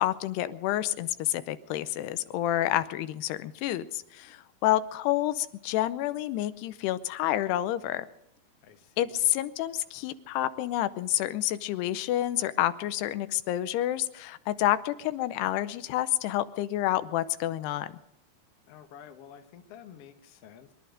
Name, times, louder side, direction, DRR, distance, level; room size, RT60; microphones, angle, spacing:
voice 1, 0.0-8.1 9.0-17.9, left 14 dB, 90° left, 13 dB, 2.8 m, -29 dB
voice 2, 8.6-9.3 18.7-20.7, left 8 dB, 65° left, 6 dB, 1.5 m, -50 dB
23.5 x 11.0 x 5.1 m, 0.81 s
omnidirectional pair, 4.6 m